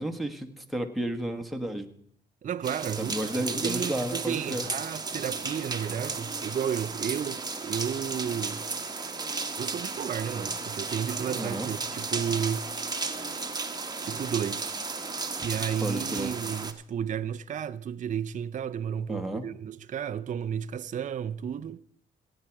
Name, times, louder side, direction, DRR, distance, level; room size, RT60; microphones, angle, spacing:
voice 1, 0.0-1.9 3.0-4.6 11.4-11.7 15.8-16.3 19.1-19.5, right 1 dB, ahead, 1.3 m, -32 dB
voice 2, 2.4-8.7 9.5-12.7 13.1-13.2 14.0-14.8 15.4-21.8, right 8 dB, 40° right, 0.5 m, -32 dB
sound 1, 2.6-16.7, right 4 dB, 20° right, 1.2 m, -34 dB
15.5 x 8.9 x 4.6 m
cardioid pair, 90°, 20 cm